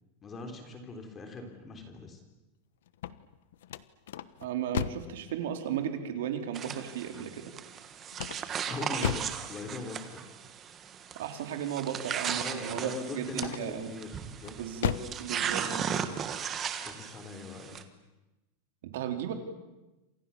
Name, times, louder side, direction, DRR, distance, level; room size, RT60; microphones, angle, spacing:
voice 1, 0.2-2.2 8.7-10.3 12.3-14.6 15.6-16.0 16.8-17.9, left 3 dB, 15° left, 5 dB, 3.6 m, -41 dB
sound 1, 2.9-5.2 8.1-9.4 13.3-13.9 14.4-15.2, left 10 dB, 75° left, 1.2 m, -35 dB
voice 2, 4.4-7.4 11.2-13.9 14.6-15.7 18.8-19.3, right 9 dB, 65° right, 5 dB, 4.0 m, -35 dB
sound 2, 6.5-17.8, right 8 dB, 20° right, 1.5 m, -37 dB
28.5 x 27.5 x 7.2 m, 1.1 s
supercardioid pair, 180°, 0 cm